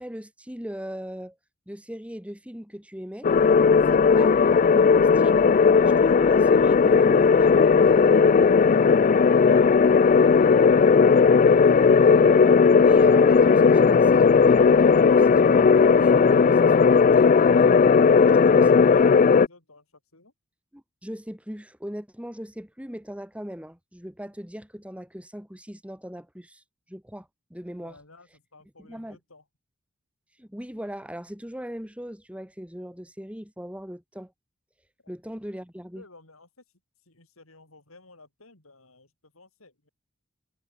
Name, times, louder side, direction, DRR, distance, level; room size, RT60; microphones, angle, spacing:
voice 1, 0.0-1.4 1.7-3.3 3.9-4.4 4.7-8.6 12.0-17.8 18.2-18.8 20.7-26.6 26.9-28.0 28.8-29.2 30.4-34.3 35.1-36.0, equal, 5° right, 3.6 m, -39 dB
sound 1, 3.2-19.5, left 5 dB, 40° left, 0.3 m, -17 dB
voice 2, 9.4-10.9 11.5-12.1 18.2-20.3 27.8-29.5 35.0-35.1 35.9-36.6 37.0-39.9, left 2 dB, 80° left, 6.5 m, -54 dB
head